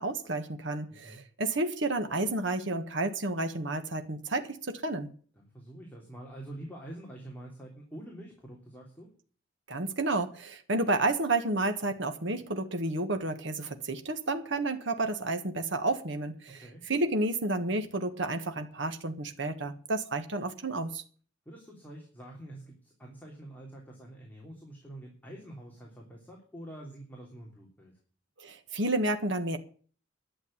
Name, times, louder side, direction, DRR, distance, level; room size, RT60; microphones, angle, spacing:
voice 1, 0.0-5.1 9.7-21.0 28.4-29.6, right 2 dB, 65° right, 1.5 m, -31 dB
voice 2, 5.4-9.1 16.5-16.8 21.4-28.0, right 1 dB, 10° left, 3.1 m, -46 dB
11.5 x 7.8 x 8.8 m
head